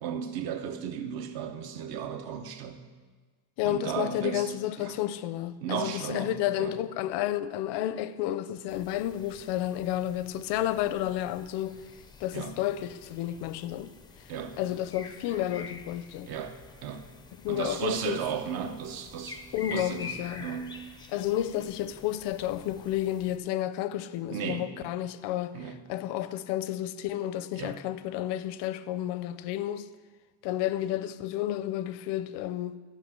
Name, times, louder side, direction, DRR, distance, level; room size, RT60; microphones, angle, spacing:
voice 1, 0.0-2.8 3.6-5.0 5.6-6.8 12.3-12.6 14.3-14.6 16.3-17.0 17.5-19.4 19.7-20.7 24.3-24.7 25.5-25.8 27.6-27.8, right 7 dB, 60° right, 1.1 m, -35 dB
voice 2, 3.6-11.8 12.2-13.9 14.6-16.3 17.4-18.2 19.5-20.5 21.1-25.6 25.9-29.9 30.4-32.8, left 12 dB, 85° left, 0.7 m, -31 dB
sound 1, 8.7-23.4, left 4 dB, 10° left, 0.4 m, -48 dB
12.5 x 5.9 x 7.4 m
cardioid pair, 170°, 41 cm